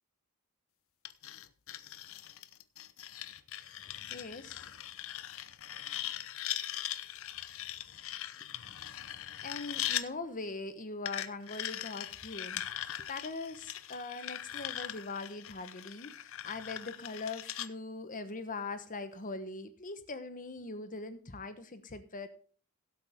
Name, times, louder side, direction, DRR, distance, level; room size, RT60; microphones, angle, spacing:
sound 1, 1.0-10.1 11.1-17.7, left 12 dB, 65° left, 0.8 m, -40 dB
voice 1, 4.1-4.7 9.4-22.3, left 3 dB, 40° left, 1.2 m, -41 dB
16.5 x 8.2 x 3.6 m
head